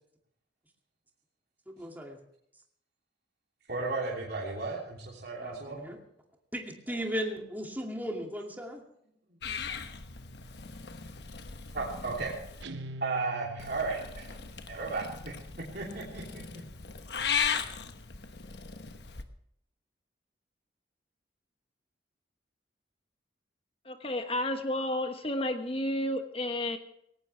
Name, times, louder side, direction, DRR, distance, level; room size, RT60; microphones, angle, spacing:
voice 1, 1.7-2.2 3.8-3.9 5.4-6.0 6.5-8.8, equal, 10° right, 1 dB, 2.4 m, -36 dB
voice 2, 3.7-5.8 11.7-12.3 13.0-14.3 14.7-15.3 15.7-16.4, right 3 dB, 60° right, -4 dB, 3.1 m, -34 dB
Purr / Meow, 9.4-12.6 13.6-19.2, left 6 dB, 65° left, 1.2 m, -37 dB
Guitar, 12.6-14.3, right 1 dB, 80° right, 1.0 m, -43 dB
voice 3, 23.8-26.8, left 1 dB, 30° left, 7 dB, 1.3 m, -31 dB
18.5 x 17.0 x 3.4 m, 0.73 s
head